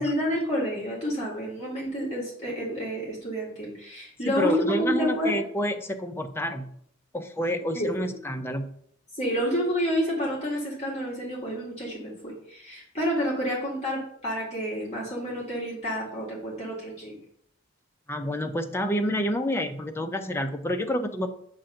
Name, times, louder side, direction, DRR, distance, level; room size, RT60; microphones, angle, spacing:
voice 1, 0.0-5.4 7.7-7.9 9.2-17.2, equal, 35° left, -5 dB, 1.8 m, -29 dB
voice 2, 4.3-6.7 7.1-8.7 18.1-21.3, equal, 10° left, 6 dB, 0.5 m, -28 dB
7.3 x 2.6 x 5.7 m, 0.66 s
head